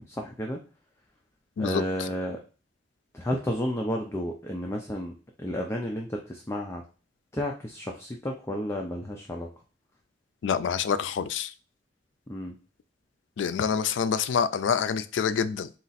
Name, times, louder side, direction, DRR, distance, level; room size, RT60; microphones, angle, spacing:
voice 1, 0.1-0.6 1.6-2.4 3.1-5.1 5.4-6.8 7.3-9.5 12.3-12.6, equal, 15° left, 0.4 m, -32 dB
voice 2, 10.4-11.5 13.4-15.7, left 7 dB, 85° left, 0.3 m, -26 dB
4.2 x 2.4 x 4.0 m
head